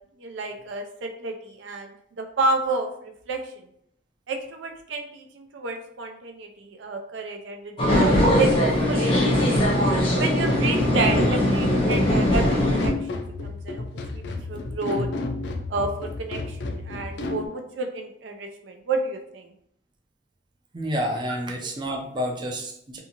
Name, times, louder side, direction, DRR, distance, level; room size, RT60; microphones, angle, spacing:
voice 1, 0.2-3.4 4.3-9.6 10.2-13.8 14.1-14.2 14.5-15.1 15.7-19.5, right 3 dB, 85° right, 4 dB, 0.4 m, -30 dB
sound 1, 7.8-12.9, left 1 dB, 30° left, 0.6 m, -20 dB
sound 2, 10.4-17.5, left 3 dB, 70° left, 0.3 m, -32 dB
voice 2, 20.7-23.0, equal, 25° right, 1 dB, 0.4 m, -29 dB
2.7 x 2.4 x 2.8 m, 0.70 s
head